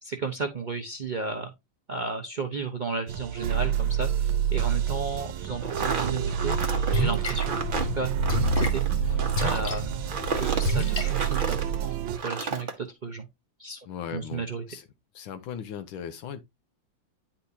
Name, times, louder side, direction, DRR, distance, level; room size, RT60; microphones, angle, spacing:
voice 1, 0.0-1.5 1.9-6.6 6.9-10.0 10.4-13.3 13.6-13.8 14.1-14.6, right 4 dB, 70° right, 0.4 m, -34 dB
sound 1, 3.1-12.2, right 11 dB, 90° right, 1.4 m, -28 dB
sound 2, 5.6-11.8 12.1-12.7, right 4 dB, 40° right, 0.7 m, -32 dB
Splash splatter, 6.5-11.8, left 2 dB, 55° left, 0.4 m, -31 dB
voice 2, 13.9-14.9 15.1-16.4, left 8 dB, 85° left, 1.6 m, -38 dB
9.7 x 4.4 x 2.8 m
omnidirectional pair, 2.1 m